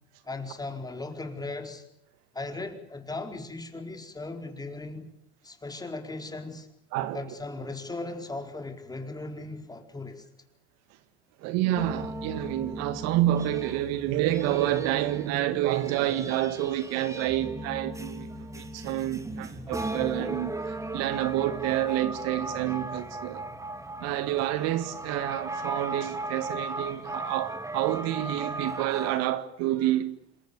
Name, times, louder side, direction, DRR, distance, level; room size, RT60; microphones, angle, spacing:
voice 1, 0.2-1.8 2.3-5.1 5.4-6.7 7.1-10.2, left 2 dB, 10° left, 4.7 m, -37 dB
voice 2, 11.4-23.5 24.0-30.2, right 13 dB, 55° right, 1.8 m, -28 dB
sound 1, 11.8-29.2, right 2 dB, 10° right, 3.0 m, -37 dB
28.0 x 22.0 x 8.4 m
hypercardioid pair, 90°, 31 cm